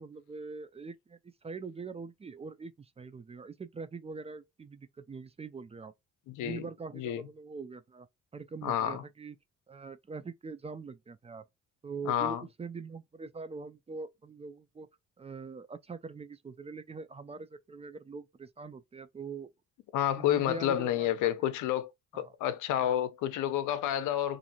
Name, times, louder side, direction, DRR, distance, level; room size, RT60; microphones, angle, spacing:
voice 1, 0.0-5.9 6.4-8.1 8.3-9.4 9.7-11.4 11.8-14.9 15.2-19.5 20.2-21.5 22.1-22.3, right 4 dB, 20° right, 0.3 m, -43 dB
voice 2, 6.3-6.7 6.9-7.2 8.6-9.0 12.0-12.4 19.9-24.4, left 11 dB, 85° left, 0.6 m, -30 dB
2.8 x 2.6 x 2.5 m
cardioid pair, 90°, 30 cm